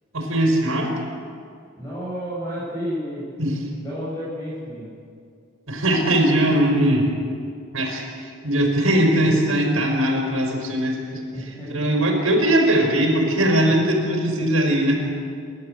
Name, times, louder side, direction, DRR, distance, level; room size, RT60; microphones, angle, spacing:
voice 1, 0.1-0.9 3.4-3.6 5.7-7.1 7.7-14.9, right 1 dB, 85° right, 1 dB, 5.3 m, -20 dB
voice 2, 1.8-3.3 3.8-4.9 11.3-11.8 14.2-14.5, equal, 15° left, -10 dB, 6.7 m, -31 dB
28.5 x 12.5 x 8.1 m, 2.3 s
head